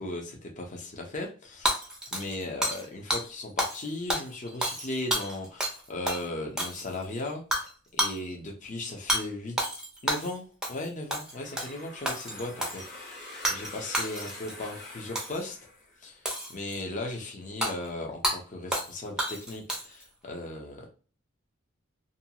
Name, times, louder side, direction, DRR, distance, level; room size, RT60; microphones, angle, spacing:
voice 1, 0.0-1.7 2.1-7.7 7.9-9.5 10.0-15.6 16.0-16.2 16.5-20.9, left 2 dB, 40° left, 0 dB, 0.7 m, -37 dB
Hammer / Shatter, 1.7-2.9 3.1-3.2 3.6-3.8 4.1-5.8 6.1-6.2 6.6-7.0 7.5-7.7 8.0-8.2 9.1-9.2 9.6-10.3 10.6-10.9 11.1-11.7 12.1-12.9 13.4-13.7 13.9-14.5 15.2-15.5 16.3-16.8 17.6-17.7 18.2-18.4 18.7-18.9 19.2-20.0, equal, 5° right, 0.6 m, -30 dB
sound 1, 11.3-16.2, left 2 dB, 55° left, 1.2 m, -45 dB
2.6 x 2.3 x 2.8 m, 0.38 s
head